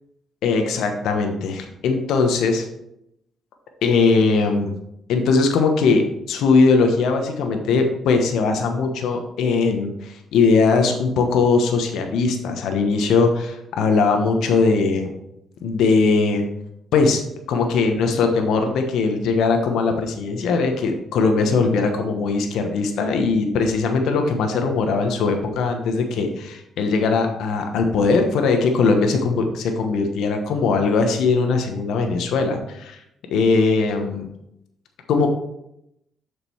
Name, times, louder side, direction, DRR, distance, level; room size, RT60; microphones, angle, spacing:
voice 1, 0.4-2.6 3.8-4.7 5.1-15.1 15.6-16.5 16.9-17.2 17.5-33.0 33.3-34.3 35.1-35.3, left 4 dB, 80° left, 5 dB, 1.1 m, -20 dB
7.1 x 5.2 x 4.5 m, 0.79 s
cardioid pair, 90°, 0 cm